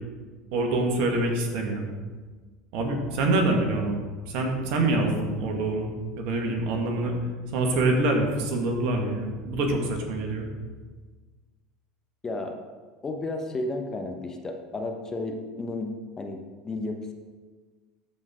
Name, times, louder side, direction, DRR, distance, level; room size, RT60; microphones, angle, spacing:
voice 1, 0.5-1.8 2.7-4.0 4.3-5.9 6.2-7.1 7.5-10.5, right 2 dB, 60° right, 2 dB, 1.7 m, -25 dB
voice 2, 12.2-12.6 13.0-17.1, left 2 dB, 25° left, 5 dB, 1.0 m, -33 dB
13.5 x 4.5 x 3.8 m, 1.4 s
hypercardioid pair, 80°, 2 cm